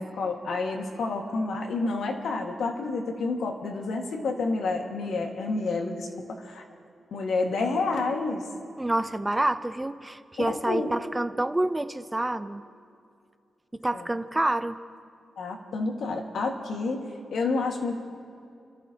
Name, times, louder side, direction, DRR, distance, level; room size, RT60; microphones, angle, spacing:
voice 1, 0.0-6.6 7.1-8.5 10.4-10.9 13.9-14.0 15.4-18.0, left 3 dB, 80° left, 2 dB, 1.7 m, -29 dB
voice 2, 8.8-12.6 13.7-14.8, right 1 dB, 15° right, 11 dB, 0.5 m, -28 dB
29.5 x 13.5 x 2.9 m, 2.4 s
wide cardioid pair, 120°, 0 cm